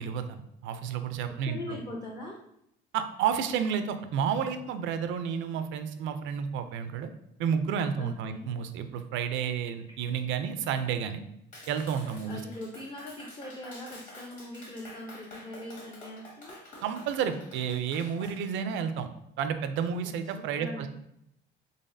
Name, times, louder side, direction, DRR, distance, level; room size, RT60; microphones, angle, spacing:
voice 1, 0.0-1.8 2.9-7.1 7.4-11.2 11.7-12.4 16.8-19.1 19.4-20.9, right 7 dB, 70° right, 9 dB, 0.4 m, -31 dB
voice 2, 1.4-2.4 8.0-8.5 12.2-16.6 19.9-20.1 20.6-20.9, left 1 dB, 25° left, -3 dB, 0.5 m, -41 dB
Clapping, 11.5-18.4, left 1 dB, 40° left, 1.4 m, -48 dB
4.0 x 3.5 x 2.6 m, 0.76 s
cardioid pair, 145°, 20 cm